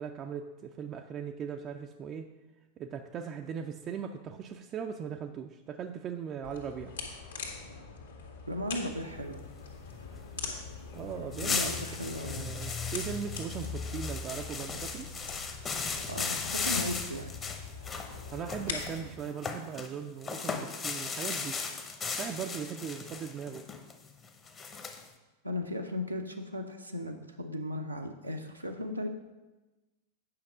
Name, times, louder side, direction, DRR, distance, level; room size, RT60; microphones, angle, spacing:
voice 1, 0.0-2.3 2.8-6.9 10.9-11.7 12.2-15.1 18.2-21.6 22.2-23.6, right 7 dB, 30° right, 4 dB, 0.4 m, -39 dB
sound 1, 6.4-19.1, left 4 dB, 70° left, 1.8 m, -41 dB
voice 2, 8.5-9.4 11.4-12.5 16.1-17.3 25.4-29.1, left 1 dB, 85° right, 1 dB, 0.7 m, -36 dB
sound 2, 10.9-11.0 11.3-19.9 20.2-25.1, left 4 dB, 20° left, 0.9 m, -37 dB
8.7 x 5.8 x 4.9 m, 1.1 s
figure-of-eight pair, 90°, 0 cm